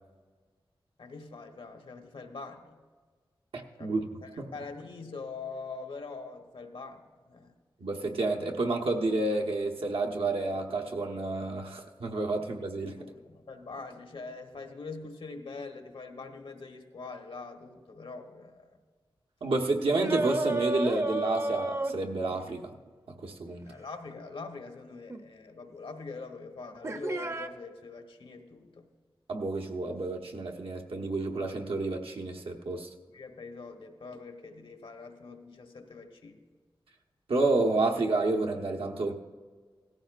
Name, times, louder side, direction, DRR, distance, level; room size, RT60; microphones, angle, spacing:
voice 1, 1.0-2.8 3.8-7.5 12.4-12.5 12.8-18.7 23.7-28.9 33.1-36.4, left 4 dB, 75° left, 5 dB, 1.2 m, -44 dB
voice 2, 3.5-4.1 4.4-4.5 7.8-12.9 19.4-22.8 23.2-23.7 29.3-32.9 37.3-39.1, right 2 dB, 85° right, 2 dB, 1.1 m, -30 dB
sound 1, 19.9-22.5 25.1-25.2 26.8-27.5, right 2 dB, 30° right, 0.6 m, -31 dB
17.0 x 14.0 x 2.5 m, 1.5 s
wide cardioid pair, 75°, 9 cm